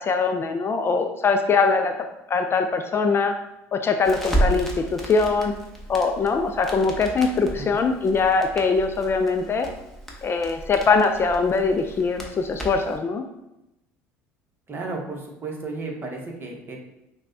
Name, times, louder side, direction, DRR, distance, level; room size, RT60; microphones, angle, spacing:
voice 1, 0.0-1.9 2.3-3.3 3.7-5.5 5.9-9.7 10.2-13.2, left 4 dB, 35° left, 5 dB, 0.4 m, -22 dB
Crackle, 4.0-13.0, right 1 dB, 5° left, 0.9 m, -32 dB
voice 2, 14.7-16.9, right 3 dB, 30° right, 0 dB, 1.0 m, -34 dB
5.8 x 2.2 x 2.7 m, 0.90 s
hypercardioid pair, 80°, 7 cm